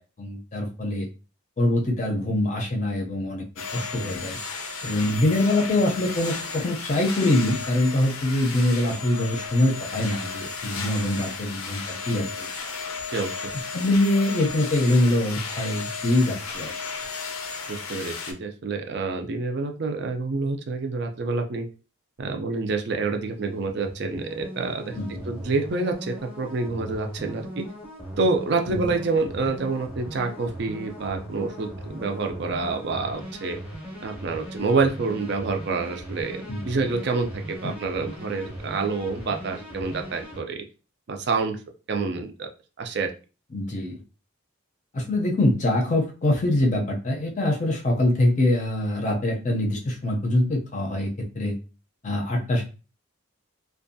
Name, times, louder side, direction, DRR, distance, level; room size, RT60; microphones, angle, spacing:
voice 1, 0.2-1.1 1.6-3.4 3.7-4.4 4.8-12.5 13.7-16.7 25.0-25.2 28.7-28.9 36.5-36.6 43.5-44.0 44.9-51.5 52.0-52.6, left 1 dB, 35° left, 1 dB, 0.5 m, -24 dB
sound 1, 3.6-18.3, left 5 dB, 85° left, 0.5 m, -34 dB
voice 2, 17.7-21.7 22.2-27.6 28.2-33.6 34.0-40.6 41.1-41.6 41.9-42.5 42.8-43.1, right 3 dB, 55° right, 4 dB, 0.4 m, -27 dB
sound 2, 22.7-40.4, equal, 5° right, 0.7 m, -39 dB
2.5 x 2.2 x 2.6 m, 0.33 s
head